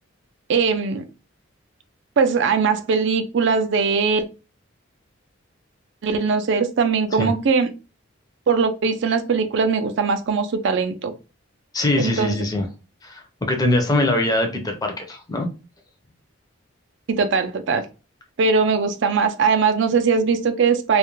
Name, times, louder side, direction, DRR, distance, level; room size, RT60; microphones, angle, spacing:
voice 1, 0.5-1.0 2.2-4.2 6.0-7.7 8.5-11.1 12.0-12.4 17.1-17.9 18.4-21.0, right 5 dB, 55° right, 0.4 m, -20 dB
voice 2, 11.7-12.7 13.0-15.5, left 1 dB, 20° left, 0.5 m, -22 dB
2.3 x 2.1 x 3.0 m
head